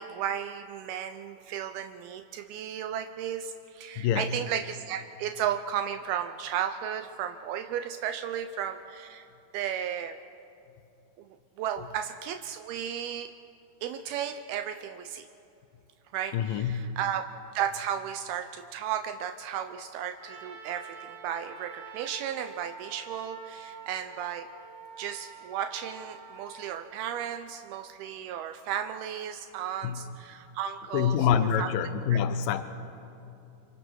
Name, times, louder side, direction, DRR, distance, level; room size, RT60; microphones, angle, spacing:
voice 1, 0.0-9.3 9.5-10.2 11.6-13.3 13.8-15.3 16.1-17.3 17.6-24.5 25.0-31.7 32.1-32.2, right 9 dB, 80° right, 2.3 m, -34 dB
voice 2, 4.0-4.3 16.3-17.0 29.8-30.1 30.9-32.6, left 8 dB, 90° left, 2.0 m, -26 dB
Trumpet, 20.2-26.8, right 5 dB, 35° right, 4.2 m, -47 dB
28.5 x 24.5 x 4.7 m
omnidirectional pair, 5.0 m